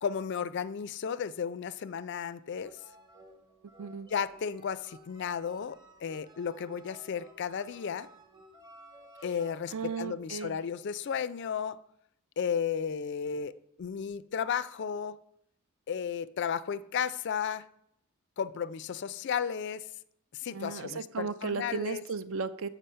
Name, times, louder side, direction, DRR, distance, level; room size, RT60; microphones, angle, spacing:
voice 1, 0.0-2.7 4.1-8.1 9.2-11.8 12.4-13.5 13.8-15.2 15.9-17.7 18.4-19.9 20.3-22.0, left 7 dB, 50° left, 0.3 m, -34 dB
sound 1, 2.6-10.0, right 1 dB, 20° right, 1.0 m, -55 dB
voice 2, 3.8-4.1 9.7-10.6 20.5-22.7, right 5 dB, 60° right, 0.5 m, -35 dB
7.7 x 6.2 x 5.5 m
head